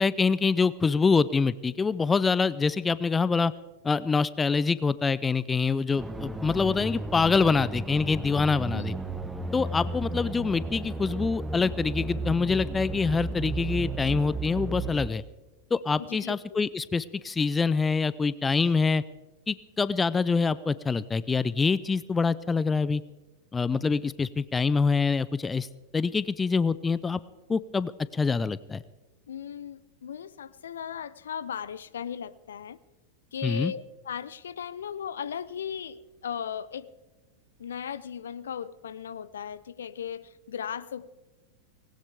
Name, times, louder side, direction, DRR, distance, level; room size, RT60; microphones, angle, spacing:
voice 1, 0.0-3.5 3.8-8.9 9.5-15.2 15.7-19.0 19.5-23.0 23.5-25.7 25.9-27.2 27.5-28.8 33.4-33.7, left 4 dB, 15° left, 19 dB, 0.4 m, -25 dB
sound 1, 6.0-15.1, right 2 dB, 5° right, 1.1 m, -34 dB
voice 2, 16.0-16.6 29.3-32.8 33.3-36.9 37.6-41.2, left 8 dB, 65° left, 18 dB, 0.6 m, -37 dB
19.0 x 17.5 x 3.5 m, 1.2 s
figure-of-eight pair, 90°, 0 cm